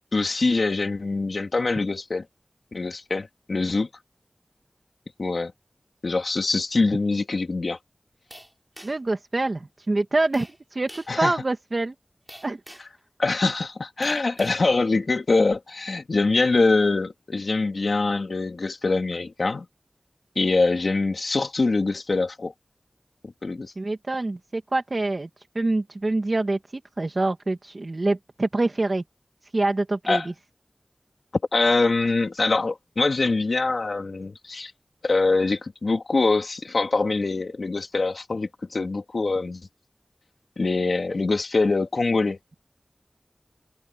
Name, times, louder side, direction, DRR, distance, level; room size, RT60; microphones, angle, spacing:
voice 1, 0.1-2.2 2.7-3.9 5.2-5.5 6.0-7.8 11.1-11.4 13.2-19.7 20.4-22.5 23.2-23.7 30.1-30.3 31.5-34.7 35.0-39.6 40.6-42.4, left 3 dB, 85° left, 2.6 m, -24 dB
sound 1, 8.3-9.1 10.3-10.6 10.9-11.2 12.3-13.0 14.0-14.6, equal, 10° right, 6.0 m, -45 dB
voice 2, 8.8-10.9 11.2-11.9 12.4-12.6 23.8-25.3 25.6-26.6 27.0-29.0 29.5-30.2, right 2 dB, 55° right, 2.0 m, -25 dB
wide cardioid pair, 60°, 0 cm